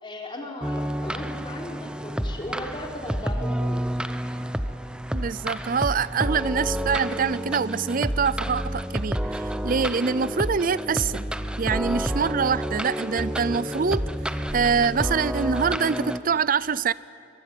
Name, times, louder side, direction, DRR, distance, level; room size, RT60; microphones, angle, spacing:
voice 1, 0.0-3.8, left 1 dB, 30° left, 0 dB, 3.4 m, -37 dB
sound 1, 0.6-16.2, equal, 5° right, 0.7 m, -29 dB
voice 2, 5.1-11.3 11.6-14.0 14.5-16.9, right 6 dB, 50° right, 19 dB, 0.5 m, -25 dB
23.0 x 20.0 x 9.2 m, 2.4 s
head